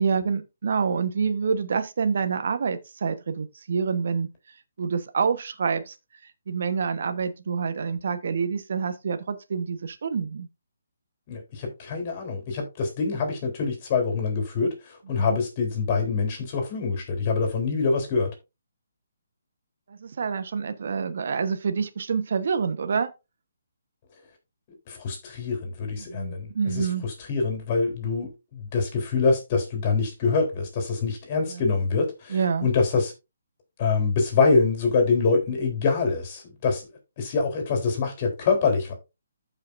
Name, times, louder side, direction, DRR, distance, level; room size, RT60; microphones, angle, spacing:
voice 1, 0.0-4.3 4.8-5.9 6.2-10.5 15.1-15.4 19.9-23.1 26.0-27.1 31.5-31.7 32.3-32.7, right 5 dB, 60° right, 1.2 m, -27 dB
voice 2, 11.3-14.7 15.1-18.3 24.9-26.9 27.3-33.1 33.8-36.9 37.2-38.9, left 4 dB, 35° left, 3.8 m, -25 dB
14.5 x 5.7 x 2.6 m
figure-of-eight pair, 145°, 0 cm